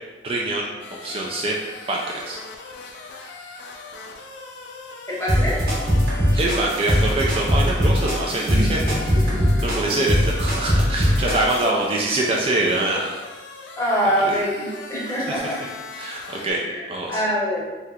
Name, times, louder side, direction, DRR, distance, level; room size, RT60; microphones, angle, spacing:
voice 1, 0.2-0.7 1.0-1.6 1.9-2.4 6.3-9.0 9.6-13.2 14.2-14.4 15.3-15.4 16.0-17.2, right 2 dB, 30° right, -2 dB, 0.3 m, -24 dB
sound 1, 0.8-16.5, left 3 dB, 75° left, 0.4 m, -39 dB
voice 2, 5.1-5.6 8.5-10.0 13.8-15.6 16.6-17.7, equal, 15° left, -5 dB, 0.8 m, -25 dB
sound 2, 5.3-11.7, equal, 60° right, 1.1 m, -21 dB
3.3 x 2.7 x 2.3 m, 1.3 s
head